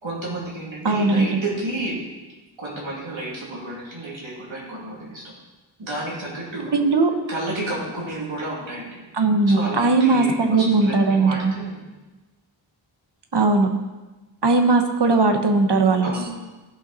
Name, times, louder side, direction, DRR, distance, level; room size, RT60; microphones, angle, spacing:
voice 1, 0.0-2.0 2.6-5.2 5.8-6.9 7.3-9.0 9.5-11.8 16.0-16.5, right 2 dB, 90° right, -4 dB, 3.0 m, -31 dB
voice 2, 0.8-1.3 6.7-7.1 9.1-11.5 13.3-13.7 14.4-16.1, right 3 dB, 60° right, 5 dB, 1.2 m, -18 dB
15.0 x 5.7 x 4.3 m, 1.2 s
wide cardioid pair, 60°, 45 cm